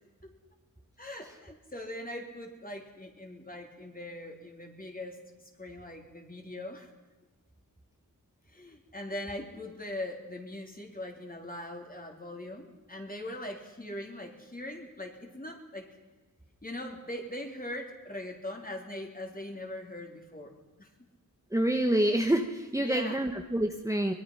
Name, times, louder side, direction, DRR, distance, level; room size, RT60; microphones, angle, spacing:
voice 1, 1.0-5.2 5.6-6.9 8.5-15.9 16.6-20.9 22.8-23.2, left 1 dB, 25° left, 2 dB, 3.7 m, -41 dB
voice 2, 21.5-24.1, right 1 dB, 10° right, 4 dB, 1.3 m, -27 dB
23.5 x 22.0 x 5.7 m, 1.2 s
wide cardioid pair, 100°, 35 cm